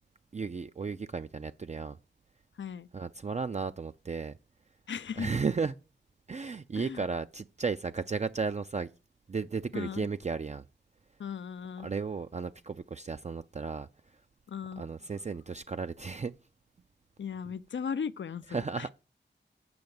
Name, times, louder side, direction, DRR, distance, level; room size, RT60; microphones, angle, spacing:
voice 1, 0.3-2.0 2.9-4.3 5.2-5.7 6.3-8.9 9.3-10.6 11.8-13.9 14.8-16.3 18.5-18.9, right 5 dB, 35° right, 0.4 m, -34 dB
voice 2, 2.6-2.9 4.9-5.3 6.8-7.0 9.7-10.1 11.2-11.9 14.5-14.8 17.2-18.9, left 7 dB, 70° left, 0.4 m, -37 dB
7.8 x 5.7 x 7.0 m
wide cardioid pair, 70°, 20 cm